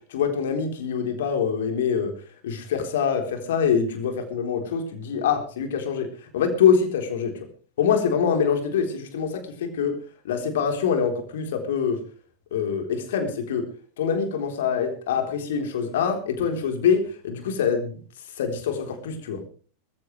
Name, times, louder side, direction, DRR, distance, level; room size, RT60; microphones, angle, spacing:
voice 1, 0.1-2.1 2.4-7.3 7.8-10.0 10.2-12.0 12.5-13.7 14.0-18.0 18.4-19.4, left 7 dB, 60° left, 6 dB, 4.0 m, -24 dB
21.0 x 15.0 x 3.3 m, 0.40 s
figure-of-eight pair, 90°, 0 cm